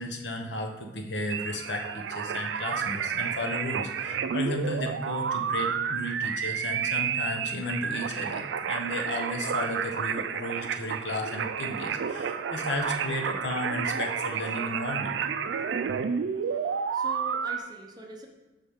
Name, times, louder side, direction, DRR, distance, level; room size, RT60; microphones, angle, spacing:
voice 1, 0.0-15.1, left 1 dB, 75° left, 4 dB, 0.9 m, -34 dB
sound 1, 1.3-17.6, right 7 dB, 80° right, 0.4 m, -31 dB
voice 2, 16.5-18.3, right 1 dB, 20° right, 1 dB, 0.9 m, -44 dB
7.0 x 5.7 x 3.6 m, 1.1 s
head